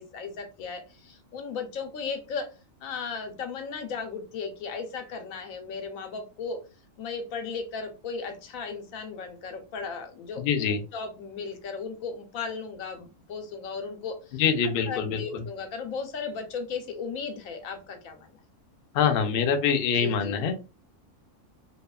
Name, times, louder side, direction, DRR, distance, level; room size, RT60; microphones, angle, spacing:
voice 1, 0.0-2.5 2.8-6.6 7.0-18.3 19.9-20.4, left 5 dB, 90° left, 6 dB, 1.1 m, -36 dB
voice 2, 10.4-10.8 14.3-15.4 18.9-20.6, left 7 dB, 65° left, 7 dB, 0.6 m, -25 dB
2.7 x 2.3 x 2.2 m, 0.31 s
omnidirectional pair, 1.4 m